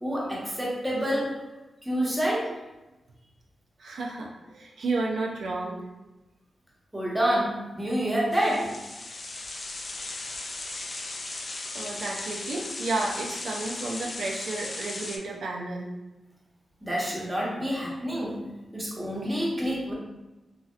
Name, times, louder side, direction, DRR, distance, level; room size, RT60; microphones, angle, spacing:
voice 1, 0.0-1.3 1.8-2.5 6.9-8.7 16.8-18.4 18.7-19.9, equal, 10° right, -5 dB, 0.8 m, -28 dB
voice 2, 3.8-5.8 9.1-9.2 11.7-15.9, right 3 dB, 80° right, -2 dB, 0.4 m, -32 dB
sound 1, 8.3-15.2, left 2 dB, 45° left, 0.3 m, -37 dB
3.1 x 2.7 x 2.4 m, 1.0 s
wide cardioid pair, 100°, 0 cm